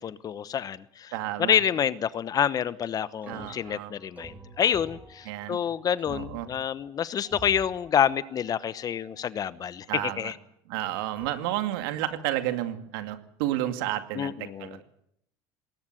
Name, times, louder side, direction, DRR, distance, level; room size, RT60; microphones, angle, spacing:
voice 1, 0.0-1.1 1.4-10.3 14.1-14.8, left 9 dB, 35° left, 16 dB, 1.0 m, -28 dB
voice 2, 1.1-1.6 3.3-3.9 5.3-5.6 6.1-6.5 9.9-10.3 10.7-14.8, right 14 dB, 85° right, 9 dB, 2.4 m, -31 dB
sound 1, 3.0-9.8 11.2-11.3, right 1 dB, 15° right, 2.7 m, -49 dB
20.5 x 19.0 x 9.0 m, 0.73 s
cardioid pair, 130°, 11 cm